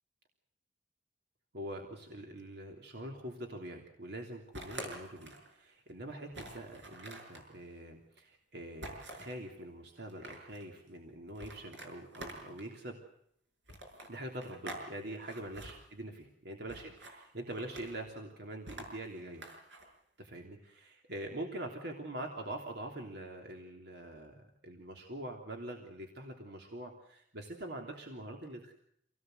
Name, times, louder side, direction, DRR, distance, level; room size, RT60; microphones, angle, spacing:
voice 1, 1.5-13.0 14.1-19.4 20.2-28.7, right 1 dB, 65° right, 2 dB, 3.2 m, -44 dB
sound 1, 4.5-5.5 5.9-6.0 6.3-7.5 8.8-9.4 10.0-10.6 11.3-12.7 13.7-14.9 15.1-15.7 16.7-17.2 17.5-18.0 18.7-19.8, right 2 dB, 80° right, 6.4 m, -46 dB
27.5 x 18.5 x 8.0 m, 0.73 s
head